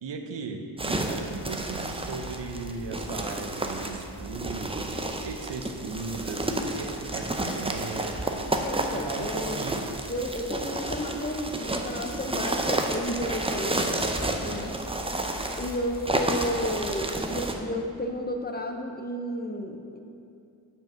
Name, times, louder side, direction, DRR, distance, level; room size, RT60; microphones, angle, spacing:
voice 1, 0.0-8.5 8.9-9.9, right 4 dB, 75° right, 5 dB, 0.7 m, -37 dB
sound 1, 0.8-17.5, right 1 dB, 15° right, 0.5 m, -31 dB
voice 2, 8.6-9.6 10.1-13.9 14.4-14.8 15.6-20.0, equal, 20° left, 3 dB, 0.7 m, -32 dB
5.5 x 4.5 x 6.1 m, 2.5 s
cardioid pair, 45°, 43 cm